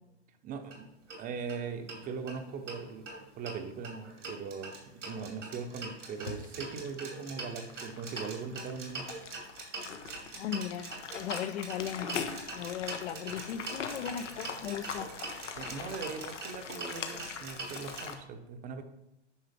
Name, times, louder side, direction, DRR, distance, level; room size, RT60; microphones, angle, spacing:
voice 1, 0.4-0.9 1.2-3.1 3.4-4.8 5.1-9.1 15.6-18.8, right 5 dB, 25° right, 0.8 m, -40 dB
sound 1, 0.6-0.8 1.1-1.2 1.5-1.6 1.9-2.8 3.1-18.0, right 3 dB, 90° right, 2.6 m, -43 dB
sound 2, 6.1-18.1, left 6 dB, 85° left, 1.2 m, -42 dB
voice 2, 10.3-15.1, left 9 dB, 65° left, 0.8 m, -37 dB
9.7 x 5.8 x 3.5 m
hypercardioid pair, 115°, 36 cm